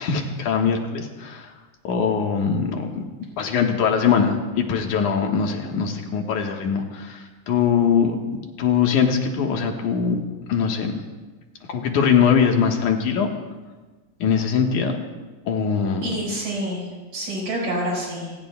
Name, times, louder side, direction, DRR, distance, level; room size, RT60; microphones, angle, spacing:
voice 1, 0.0-1.5 1.8-3.0 3.4-8.2 8.6-10.2 10.5-10.9 11.7-13.3 14.2-15.0 15.5-16.1, left 6 dB, 85° left, 2 dB, 2.9 m, -21 dB
voice 2, 16.0-18.4, right 1 dB, 70° right, -3 dB, 6.9 m, -28 dB
28.0 x 18.5 x 2.3 m, 1.3 s
omnidirectional pair, 3.4 m